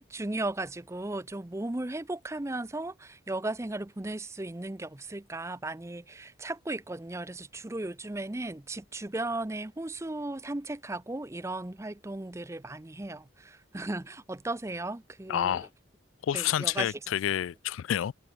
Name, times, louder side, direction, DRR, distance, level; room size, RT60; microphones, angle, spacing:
voice 1, 0.0-15.6 16.3-16.9, right 2 dB, 15° right, 0.5 m, -36 dB
voice 2, 15.3-15.7 16.2-18.1, left 10 dB, 85° left, 0.3 m, -29 dB
head